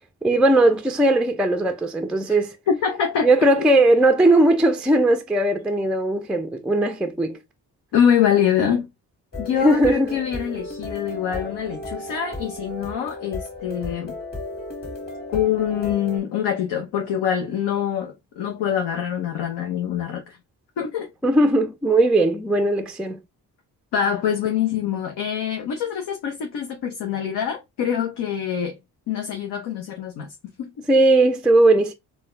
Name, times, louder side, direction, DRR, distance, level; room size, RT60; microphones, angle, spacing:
voice 1, 0.2-2.6 3.2-7.4 9.6-10.1 21.2-23.2 30.9-31.9, right 2 dB, ahead, 0.4 m, -18 dB
voice 2, 2.7-3.3 7.9-8.9 9.4-14.2 15.3-20.4 20.8-21.1 23.9-28.8 29.1-30.7, left 8 dB, 70° left, 0.7 m, -24 dB
sound 1, 9.3-16.2, left 2 dB, 20° left, 1.6 m, -34 dB
3.9 x 2.3 x 2.5 m
hypercardioid pair, 40°, 43 cm